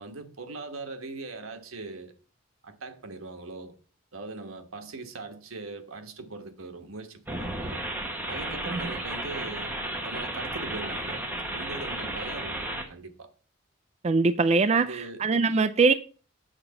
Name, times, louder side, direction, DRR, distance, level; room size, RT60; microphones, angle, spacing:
voice 1, 0.0-2.1 2.6-3.8 4.1-7.8 8.3-9.8 10.0-13.3 14.7-15.3, right 3 dB, 85° right, 1.2 m, -40 dB
sound 1, 7.3-12.9, right 1 dB, 10° right, 1.2 m, -33 dB
voice 2, 14.0-15.9, right 4 dB, 30° right, 0.3 m, -22 dB
8.0 x 3.8 x 6.7 m
head